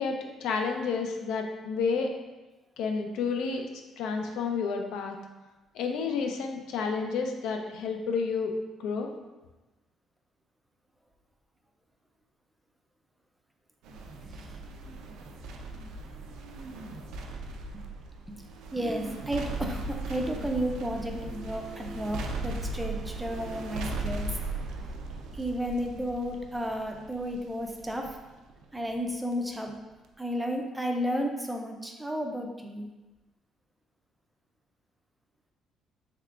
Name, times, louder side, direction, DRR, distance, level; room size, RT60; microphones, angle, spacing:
voice 1, 0.0-2.1 2.8-3.6 4.0-5.2 5.7-8.5 8.8-9.1, left 5 dB, 90° left, 3 dB, 0.4 m, -30 dB
sound 1, 13.8-29.3 29.7-29.8, right 2 dB, 90° right, 0.3 m, -38 dB
voice 2, 14.3-14.6 17.7-17.8 18.3-18.4 18.7-24.4 25.3-28.2 28.7-29.8 30.2-32.9, equal, 5° right, 2 dB, 0.3 m, -33 dB
3.5 x 3.2 x 2.3 m, 1.1 s
cardioid pair, 150°, 0 cm